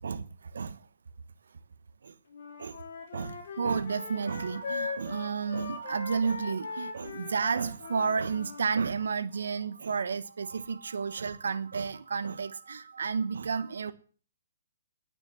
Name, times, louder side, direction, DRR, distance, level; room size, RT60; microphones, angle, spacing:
voice 1, 0.0-0.8 2.0-2.1 2.6-2.8 3.1-13.9, right 5 dB, 70° right, 1.2 m, -32 dB
Wind instrument woodwind instrument, 2.3-8.6, left 4 dB, 60° left, 3.3 m, -40 dB
10.0 x 9.2 x 7.8 m
hypercardioid pair, 135°, 0 cm